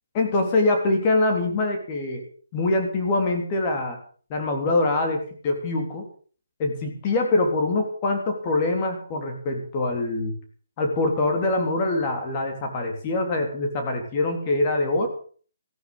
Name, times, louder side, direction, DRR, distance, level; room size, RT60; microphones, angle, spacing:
voice 1, 0.2-2.2 2.5-4.0 4.3-6.0 6.6-10.3 10.8-15.1, left 2 dB, 25° left, 3 dB, 3.5 m, -24 dB
15.0 x 13.5 x 5.5 m, 0.42 s
hypercardioid pair, 160°, 0 cm